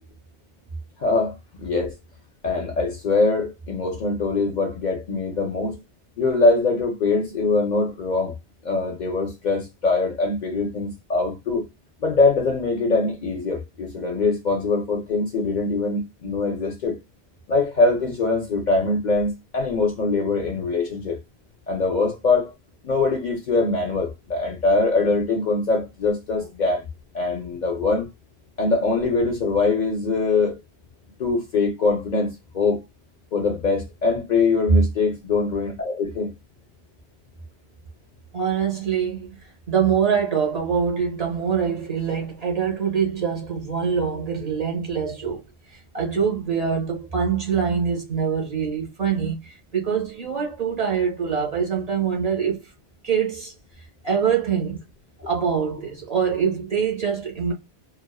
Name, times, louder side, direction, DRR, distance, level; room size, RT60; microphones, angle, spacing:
voice 1, 1.0-1.9 2.4-5.8 6.2-8.3 8.6-11.6 12.0-17.0 17.5-21.2 21.7-22.5 22.8-26.9 27.1-28.1 28.6-30.6 31.2-32.8 33.3-36.3, left 3 dB, 55° left, 0.6 m, -23 dB
voice 2, 38.3-39.4 39.7-45.4 45.7-52.7 53.0-53.5 54.0-54.8 55.2-57.5, right 7 dB, 40° right, 0.7 m, -24 dB
2.4 x 2.3 x 2.2 m
omnidirectional pair, 1.1 m